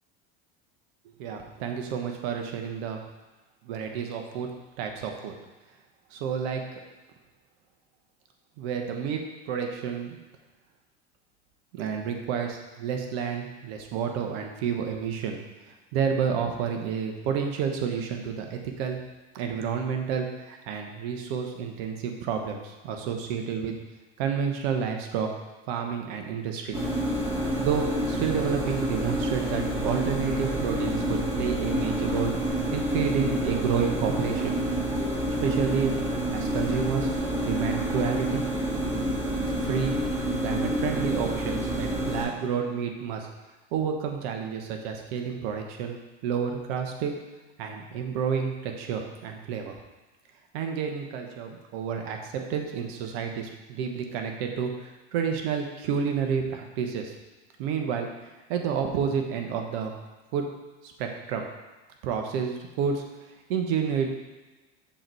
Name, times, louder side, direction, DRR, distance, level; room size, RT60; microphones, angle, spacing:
voice 1, 1.2-3.0 3.6-4.5 4.8-5.3 6.1-6.6 8.6-9.2 9.5-10.2 11.7-15.4 15.7-19.0 19.3-23.8 24.2-25.3 25.7-26.8 27.6-34.5 35.4-35.9 36.3-37.1 37.4-38.5 39.6-40.0 40.4-43.3 43.7-46.0 46.2-47.1 47.6-49.8 50.5-57.1 57.6-58.1 58.5-59.9 60.3-60.4 60.8-61.4 62.0-63.0 63.5-64.1, right 7 dB, 70° right, 4 dB, 1.1 m, -30 dB
sound 1, 26.7-42.3, right 1 dB, 10° right, 2.2 m, -28 dB
6.2 x 4.1 x 4.7 m, 1.2 s
hypercardioid pair, 95°, 32 cm